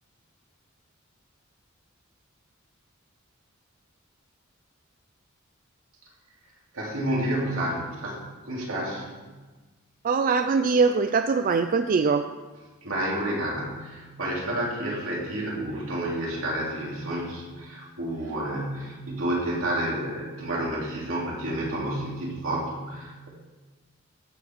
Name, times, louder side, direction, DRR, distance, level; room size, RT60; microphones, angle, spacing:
voice 1, 6.7-9.1 12.8-23.3, right 1 dB, 75° right, -4 dB, 3.1 m, -30 dB
voice 2, 10.0-12.2, right 4 dB, 40° right, 8 dB, 0.4 m, -22 dB
14.0 x 5.1 x 5.9 m, 1.3 s
head